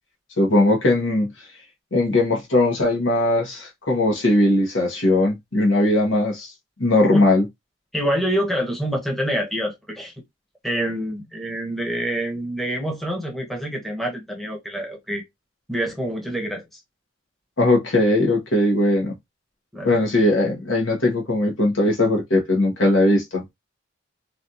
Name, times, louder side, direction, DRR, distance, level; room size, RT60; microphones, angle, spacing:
voice 1, 0.4-1.3 1.9-6.5 6.8-7.4 17.6-19.1 19.8-23.4, left 1 dB, 80° left, 1.2 m, -19 dB
voice 2, 7.9-10.1 10.6-15.2 15.7-16.8 19.7-20.0, equal, ahead, 0.8 m, -26 dB
3.2 x 2.5 x 2.6 m
head